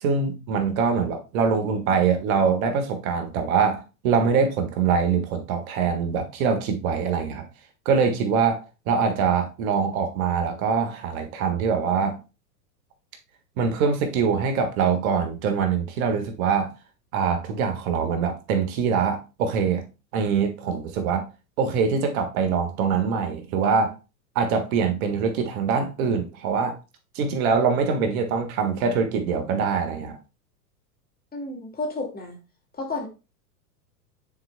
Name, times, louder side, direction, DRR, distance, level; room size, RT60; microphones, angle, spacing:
voice 1, 0.0-7.5 7.8-8.6 8.9-12.2 13.6-16.7 17.1-19.9 20.1-21.3 21.6-23.9 24.3-26.8 27.1-30.2, right 6 dB, 55° right, 1.6 m, -23 dB
voice 2, 31.3-32.4 32.7-33.1, left 2 dB, 20° left, 2.2 m, -31 dB
9.5 x 4.7 x 2.2 m
hypercardioid pair, 95°, 49 cm